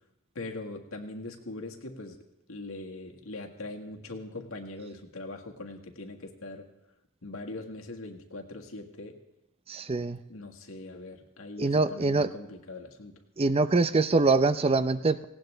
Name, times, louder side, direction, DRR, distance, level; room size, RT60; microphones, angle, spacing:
voice 1, 0.3-2.2 2.5-6.6 7.2-9.2 10.3-13.1, left 2 dB, 85° left, 2 dB, 1.8 m, -41 dB
voice 2, 9.7-10.2 11.6-12.3 13.4-15.2, right 3 dB, 30° right, 13 dB, 0.5 m, -24 dB
18.5 x 17.5 x 3.4 m, 0.92 s
head